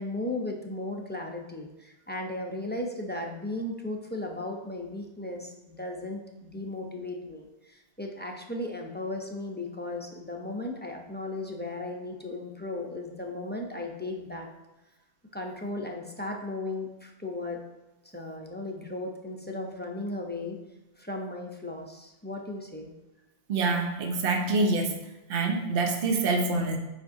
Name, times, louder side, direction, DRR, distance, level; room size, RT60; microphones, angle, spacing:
voice 1, 0.0-14.5 15.3-17.6 18.1-20.6 21.0-22.9, left 2 dB, 15° left, 1 dB, 0.5 m, -36 dB
voice 2, 23.5-25.0 25.3-26.8, right 3 dB, 60° right, 4 dB, 1.0 m, -26 dB
8.3 x 5.1 x 2.6 m, 0.97 s
omnidirectional pair, 1.1 m